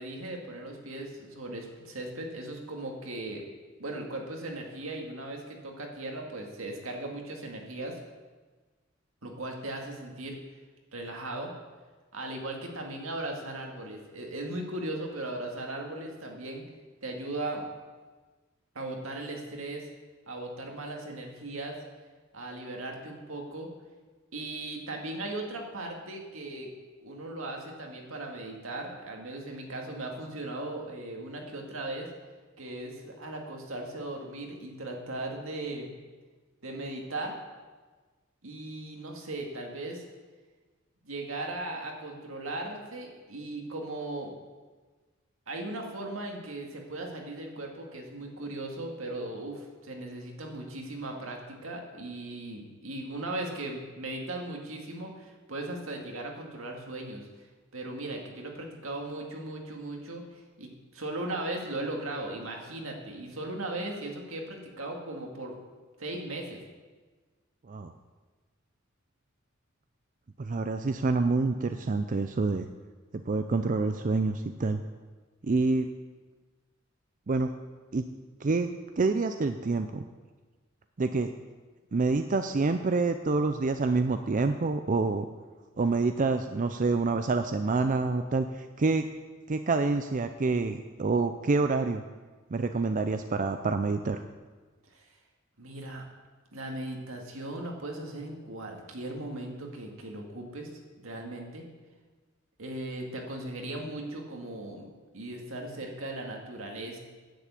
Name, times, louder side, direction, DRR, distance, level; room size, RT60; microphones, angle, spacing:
voice 1, 0.0-3.4 3.8-8.0 9.2-10.4 10.9-11.5 12.1-16.6 17.0-17.7 18.7-19.9 20.3-21.8 22.3-23.7 24.3-26.7 27.0-32.1 32.6-35.9 36.6-37.4 38.4-40.0 41.0-44.3 45.5-57.5 57.7-65.6 66.0-66.6 94.9-95.1 95.6-96.0 96.5-100.7 101.0-101.7 102.6-107.0, right 2 dB, 80° right, 1 dB, 2.1 m, -38 dB
voice 2, 70.4-72.7 73.3-74.8 75.4-75.9 77.3-77.5 77.9-78.0 78.4-78.7 79.0-80.0 81.0-81.3 81.9-85.3 85.8-89.1 89.5-92.0 92.5-94.2, right 3 dB, 40° right, 8 dB, 0.5 m, -27 dB
10.0 x 7.4 x 8.4 m, 1.3 s
head